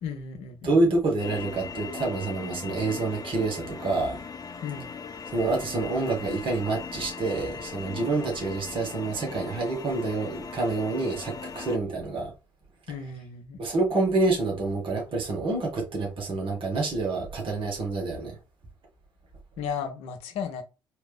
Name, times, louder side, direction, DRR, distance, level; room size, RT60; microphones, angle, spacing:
voice 1, 0.0-0.6 4.6-4.9 12.9-13.6 19.6-20.6, left 7 dB, 70° left, 0.9 m, -34 dB
voice 2, 0.6-4.2 5.3-12.3 13.6-18.4, right 3 dB, 55° right, 2.1 m, -27 dB
sound 1, 1.2-11.8, left 5 dB, 35° left, 0.9 m, -39 dB
4.3 x 3.0 x 3.5 m
hypercardioid pair, 45°, 11 cm